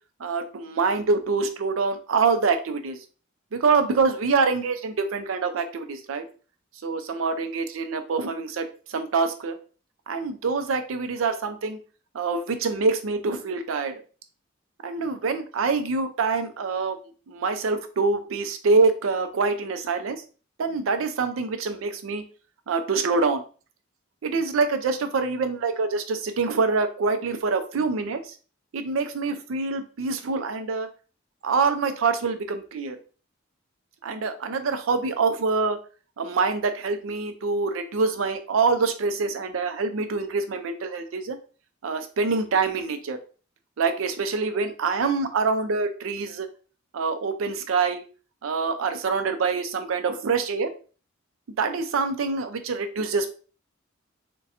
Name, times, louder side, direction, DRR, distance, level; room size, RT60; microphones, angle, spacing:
voice 1, 0.2-3.0 3.5-6.2 6.8-9.5 10.1-11.8 12.1-14.0 14.8-17.0 17.3-20.2 20.6-22.2 22.7-23.4 24.2-28.3 28.7-30.9 31.4-33.0 34.0-35.8 36.2-41.4 41.8-43.2 43.8-46.5 46.9-48.0 48.4-50.7 51.6-53.3, right 4 dB, 90° right, 8 dB, 0.5 m, -25 dB
4.1 x 2.2 x 2.5 m, 0.37 s
head